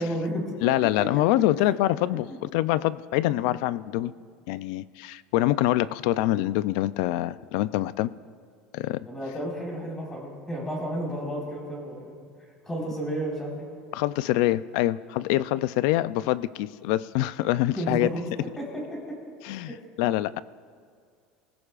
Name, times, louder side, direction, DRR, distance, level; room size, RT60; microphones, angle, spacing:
voice 1, 0.0-0.9 1.6-1.8 3.3-3.4 9.0-12.1 12.6-13.6 17.7-19.2 19.7-19.8, equal, 10° left, -4 dB, 4.6 m, -32 dB
voice 2, 0.6-4.1 4.5-8.1 8.7-9.1 13.9-18.1 19.4-20.4, left 15 dB, 60° left, 16 dB, 0.4 m, -25 dB
24.5 x 16.0 x 2.5 m, 2.1 s
cardioid pair, 170°, 4 cm